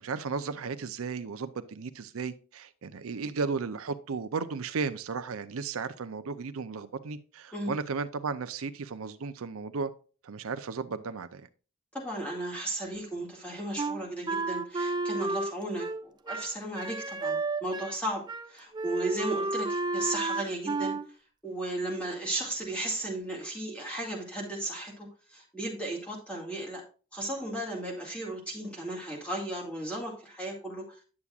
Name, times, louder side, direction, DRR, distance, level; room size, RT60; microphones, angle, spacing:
voice 1, 0.0-9.9 10.2-11.5, right 4 dB, 85° right, 11 dB, 0.5 m, -35 dB
voice 2, 11.9-21.0 21.4-26.8 27.1-31.0, right 1 dB, 5° left, -2 dB, 2.1 m, -35 dB
Wind instrument woodwind instrument, 13.8-18.0 18.3-18.5 18.7-21.1, right 3 dB, 20° right, 0.3 m, -32 dB
9.7 x 7.1 x 2.4 m, 0.37 s
head